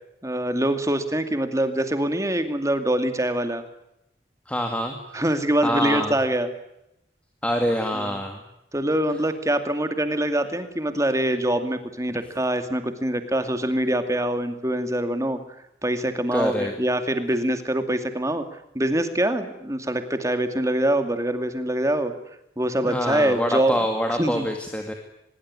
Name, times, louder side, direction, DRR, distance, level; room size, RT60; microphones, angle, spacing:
voice 1, 0.2-3.6 5.1-6.5 7.9-8.2 8.7-15.4 15.8-18.4 18.7-22.1 22.6-23.7 24.2-24.5, right 1 dB, 15° right, 8 dB, 2.4 m, -24 dB
voice 2, 4.5-5.2 5.6-6.2 7.4-8.4 16.3-16.7 22.8-24.9, equal, 5° left, 4 dB, 2.3 m, -25 dB
24.5 x 21.5 x 9.8 m, 0.82 s
head